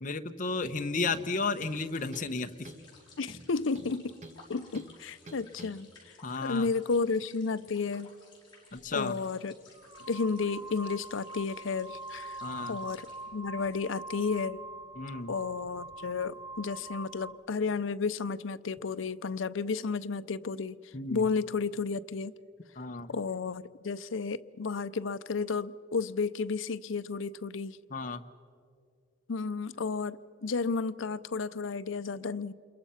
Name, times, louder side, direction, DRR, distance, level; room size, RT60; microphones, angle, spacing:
voice 1, 0.0-2.7 6.2-6.7 8.7-9.2 12.4-12.8 15.0-15.3 20.9-21.2 22.8-23.1 27.9-28.2, left 3 dB, 40° left, 0.9 m, -33 dB
sound 1, 0.6-0.8 1.1-1.8 2.1-2.4 2.6-2.9 3.3-4.4 4.7-4.9 5.3-5.7, right 1 dB, 35° right, 1.6 m, -47 dB
sound 2, 1.1-13.2, left 4 dB, 25° left, 5.3 m, -58 dB
voice 2, 3.2-4.2 4.5-6.1 6.4-8.1 8.9-9.5 10.1-12.4 12.7-13.1 13.3-14.6 15.3-20.8 21.1-22.3 23.1-27.8 29.3-32.5, left 4 dB, 85° left, 0.6 m, -32 dB
sound 3, 8.8-8.9 9.7-17.5, right 3 dB, 20° right, 0.5 m, -44 dB
28.0 x 22.5 x 5.7 m
head